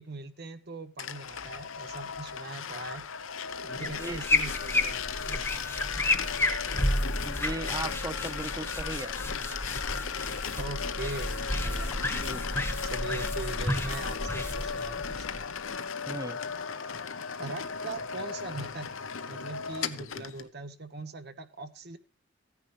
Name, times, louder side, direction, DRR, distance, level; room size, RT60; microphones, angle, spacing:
voice 1, 0.0-3.1 3.6-5.4 10.6-11.9 12.8-15.5 17.4-18.9 19.3-22.0, right 3 dB, 50° right, 1.0 m, -41 dB
sound 1, 1.0-20.5, left 6 dB, 75° left, 0.8 m, -36 dB
sound 2, 3.7-15.7, left 1 dB, 10° left, 1.2 m, -32 dB
voice 2, 3.8-4.4 7.2-9.1 12.1-12.4 16.1-16.4, right 2 dB, 15° right, 0.5 m, -37 dB
15.5 x 9.7 x 3.2 m
head